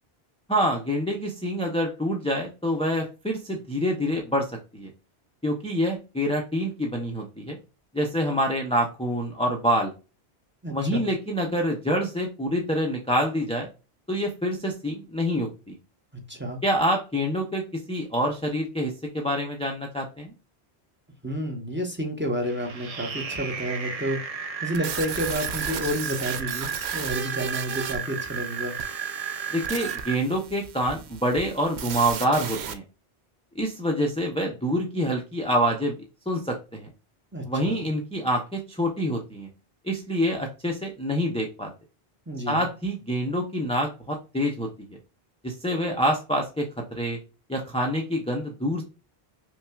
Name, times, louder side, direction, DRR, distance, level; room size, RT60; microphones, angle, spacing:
voice 1, 0.5-4.9 5.4-7.6 7.9-9.9 10.7-13.7 14.1-15.8 16.6-20.3 29.5-32.8 33.6-36.0 36.3-36.9 37.5-39.5 39.8-41.7 42.5-44.7 45.4-47.2 47.5-48.8, equal, 5° left, 0 dB, 0.5 m, -26 dB
voice 2, 10.6-11.1 16.3-16.6 21.2-24.2 24.6-28.7 37.3-37.9 42.3-42.7, equal, 10° right, 2 dB, 0.8 m, -30 dB
sound 1, 22.4-30.2, right 6 dB, 45° right, 0.5 m, -33 dB
sound 2, 24.7-32.7, right 7 dB, 90° right, 0.9 m, -35 dB
5.7 x 2.2 x 2.3 m, 0.31 s
omnidirectional pair, 1.1 m